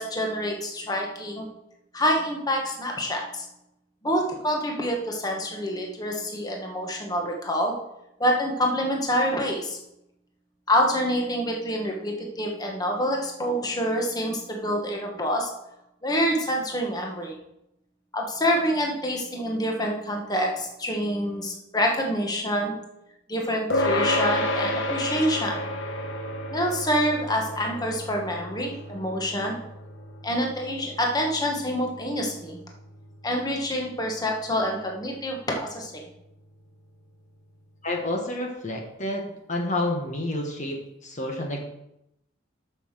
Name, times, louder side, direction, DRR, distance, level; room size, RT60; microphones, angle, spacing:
voice 1, 0.0-1.5 1.9-3.4 4.0-7.7 8.2-9.8 10.7-15.5 16.0-17.3 18.1-22.7 23.3-25.7 26.5-29.6 30.2-32.6 33.2-36.0, equal, 20° left, 0 dB, 1.4 m, -26 dB
sound 1, 23.7-33.4, left 1 dB, 70° left, 1.2 m, -31 dB
voice 2, 37.8-39.2 39.5-41.6, left 1 dB, 40° left, 1 dB, 1.3 m, -29 dB
8.0 x 5.8 x 6.6 m, 0.83 s
head